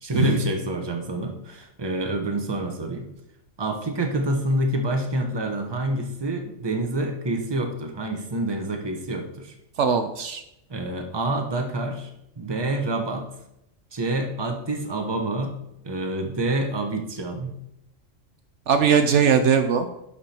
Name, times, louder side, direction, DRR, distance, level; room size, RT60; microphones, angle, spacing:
voice 1, 0.0-3.1 3.6-9.5 10.7-12.1 12.4-13.3 13.9-15.5 15.8-17.5, right 1 dB, 20° right, 4 dB, 1.0 m, -27 dB
voice 2, 9.8-10.4 18.7-19.9, right 6 dB, 70° right, 8 dB, 0.9 m, -19 dB
11.0 x 4.9 x 4.4 m, 0.83 s
omnidirectional pair, 1.3 m